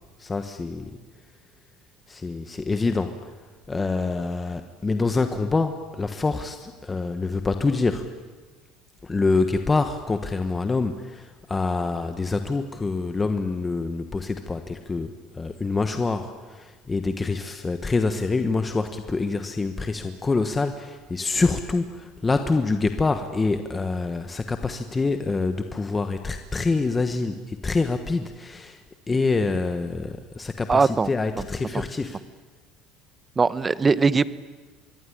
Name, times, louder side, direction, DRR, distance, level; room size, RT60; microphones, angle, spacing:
voice 1, 0.2-0.9 2.1-3.1 3.7-8.1 9.0-28.8 29.1-32.2, left 3 dB, 15° left, 7 dB, 1.3 m, -26 dB
voice 2, 30.7-31.1 31.7-31.8 33.4-34.3, right 4 dB, 20° right, 16 dB, 0.9 m, -20 dB
25.0 x 21.0 x 10.0 m, 1.3 s
cardioid pair, 135°, 0 cm